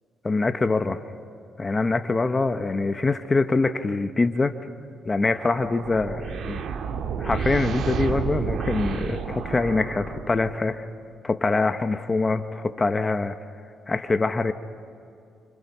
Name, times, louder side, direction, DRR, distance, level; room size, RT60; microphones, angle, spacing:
voice 1, 0.2-1.0 1.6-4.5 5.0-6.6 7.2-10.9 11.2-13.4 13.9-14.5, left 3 dB, 25° left, 9 dB, 0.9 m, -24 dB
sound 1, 5.2-10.7, right 6 dB, 70° right, 1.9 m, -30 dB
29.5 x 26.0 x 5.6 m, 2.5 s
cardioid pair, 90°, 0 cm